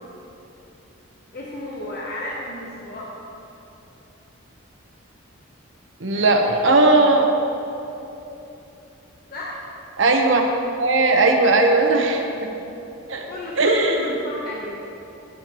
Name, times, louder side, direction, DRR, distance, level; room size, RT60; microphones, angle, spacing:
voice 1, 1.3-3.1 6.1-7.0 9.3-9.6 13.2-14.8, left 1 dB, 50° left, -5 dB, 1.0 m, -34 dB
voice 2, 6.0-7.3 10.0-10.4 10.8-12.5 13.1-13.3 13.6-14.0, right 2 dB, 70° right, 3 dB, 1.0 m, -17 dB
15.0 x 7.6 x 3.1 m, 3.0 s
head